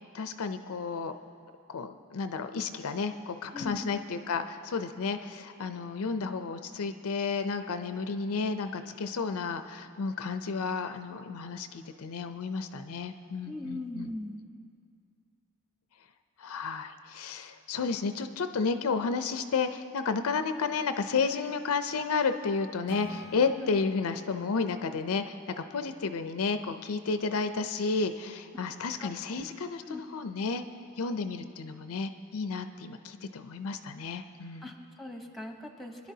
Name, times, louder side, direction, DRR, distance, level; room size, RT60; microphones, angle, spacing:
voice 1, 0.1-1.1 1.7-14.1 16.4-30.6 31.0-34.7, left 4 dB, 70° left, 9 dB, 0.5 m, -32 dB
voice 2, 13.5-14.4 23.4-23.8 29.0-29.4 29.8-30.0 34.6-36.1, left 2 dB, ahead, 3 dB, 0.9 m, -40 dB
Acoustic guitar / Strum, 22.9-26.3, right 1 dB, 75° right, 1.2 m, -49 dB
23.0 x 11.0 x 2.8 m, 2.4 s
head